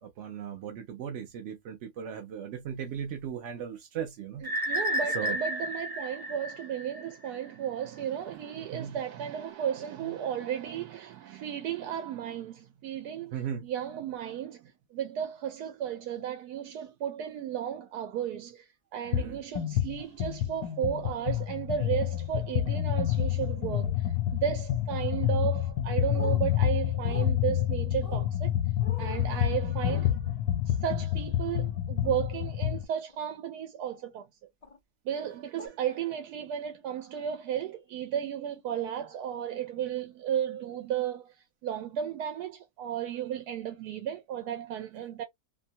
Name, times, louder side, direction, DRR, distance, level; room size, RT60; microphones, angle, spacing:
voice 1, 0.0-4.5 5.1-5.4 8.7-9.0 13.3-13.7 19.1-19.4, right 8 dB, 65° right, 0.8 m, -37 dB
sound 1, 4.4-7.3, equal, 25° right, 0.5 m, -32 dB
voice 2, 4.7-13.4 13.6-28.5 29.0-30.3 30.7-34.3 35.0-45.2, right 9 dB, 85° right, 1.1 m, -34 dB
sound 2, 19.1-19.3 19.5-32.8, left 11 dB, 80° left, 1.1 m, -28 dB
sound 3, 26.1-26.4 27.0-27.3 28.0-28.3 28.8-29.2 29.8-30.0 32.0-32.2 33.1-33.4 34.6-34.8 35.6-35.7, left 3 dB, 50° left, 0.4 m, -44 dB
2.8 x 2.1 x 2.7 m
omnidirectional pair, 1.6 m